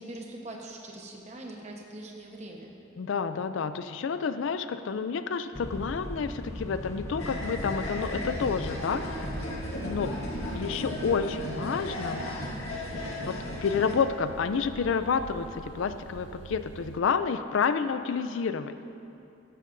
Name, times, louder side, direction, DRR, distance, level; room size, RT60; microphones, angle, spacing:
voice 1, 0.0-2.7, right 1 dB, 35° right, 0 dB, 1.0 m, -42 dB
voice 2, 3.0-9.0 9.8-10.1 10.5-12.2 13.2-18.7, left 5 dB, 65° left, 11 dB, 0.4 m, -29 dB
sound 1, 5.5-10.7, equal, 15° left, 0.5 m, -39 dB
sound 2, 7.2-14.0, left 1 dB, 90° left, 1.6 m, -36 dB
sound 3, 7.5-17.0, right 4 dB, 60° right, 0.4 m, -45 dB
13.0 x 11.5 x 2.6 m, 2.7 s
head